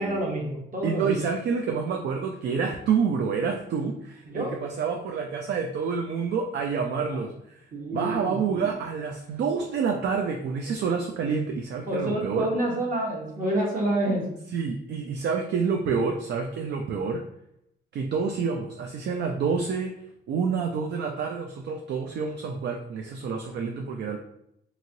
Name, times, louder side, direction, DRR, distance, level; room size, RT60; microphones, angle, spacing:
voice 1, 0.0-1.2 4.3-4.6 7.1-7.2 7.7-8.8 11.9-14.3, right 1 dB, 45° right, -1 dB, 1.1 m, -28 dB
voice 2, 0.8-7.6 7.9-12.5 14.5-17.2 17.9-19.9 20.3-24.2, right 5 dB, 60° right, 2 dB, 0.4 m, -28 dB
3.0 x 2.8 x 2.6 m, 0.75 s
cardioid pair, 90°, 20 cm